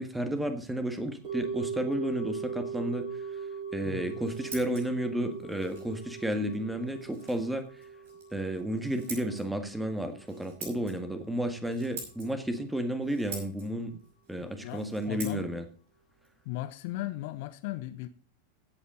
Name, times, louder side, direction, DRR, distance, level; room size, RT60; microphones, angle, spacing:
voice 1, 0.0-3.1 3.7-7.6 8.3-14.0 14.3-15.6, right 1 dB, 5° right, 1.8 m, -32 dB
sound 1, 1.2-11.5 11.8-11.9, right 6 dB, 35° right, 6.5 m, -40 dB
voice 2, 3.8-4.2 14.4-15.5 16.4-18.1, left 16 dB, 50° left, 1.0 m, -37 dB
Scissors, 3.9-17.5, right 3 dB, 60° right, 5.6 m, -49 dB
16.0 x 8.1 x 3.9 m
figure-of-eight pair, 90°, 0 cm